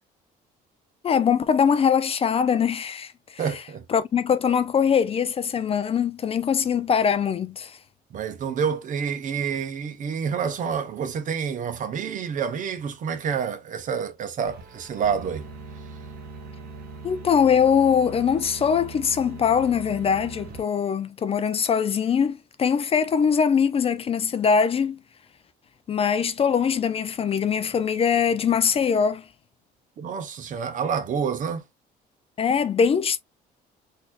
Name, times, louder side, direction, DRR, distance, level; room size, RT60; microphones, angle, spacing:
voice 1, 1.0-3.4 3.9-7.8 17.0-25.0 25.9-29.2 32.4-33.2, left 7 dB, 35° left, 0.5 m, -22 dB
voice 2, 3.4-3.9 8.1-15.5 30.0-31.6, right 7 dB, 50° right, 0.9 m, -28 dB
sound 1, 14.5-20.6, right 3 dB, 70° right, 1.6 m, -41 dB
4.1 x 2.7 x 2.4 m
cardioid pair, 110°, 17 cm